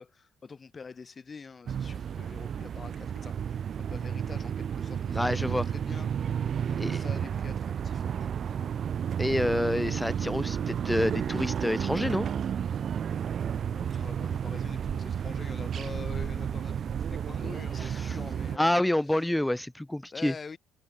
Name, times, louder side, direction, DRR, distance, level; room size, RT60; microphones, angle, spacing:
voice 1, 0.0-6.1 6.5-8.7 13.7-19.2 20.1-20.6, left 5 dB, 35° left, 7.7 m, -46 dB
sound 1, 1.7-18.6, right 8 dB, 50° right, 0.5 m, -32 dB
voice 2, 5.1-5.7 6.8-7.0 9.2-12.3 18.6-20.3, left 1 dB, 10° left, 0.7 m, -28 dB
hypercardioid pair, 50°, 0 cm